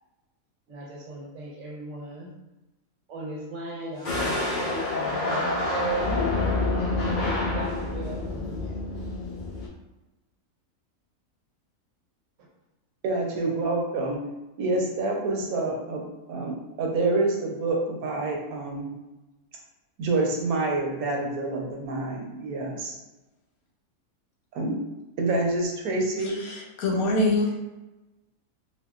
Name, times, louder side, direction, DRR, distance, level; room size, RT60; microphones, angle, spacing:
voice 1, 0.7-2.3 3.1-6.3 7.0-8.7, right 2 dB, 65° right, -2 dB, 1.0 m, -36 dB
sound 1, 4.0-9.7, left 2 dB, 60° left, 0.5 m, -27 dB
voice 2, 13.0-14.2 14.6-18.9 20.0-23.0 24.5-24.8 25.2-26.4, right 2 dB, 85° right, 0 dB, 1.1 m, -27 dB
voice 3, 26.4-27.5, left 2 dB, 85° left, -1 dB, 1.2 m, -24 dB
3.6 x 2.4 x 2.3 m, 1.1 s
omnidirectional pair, 1.5 m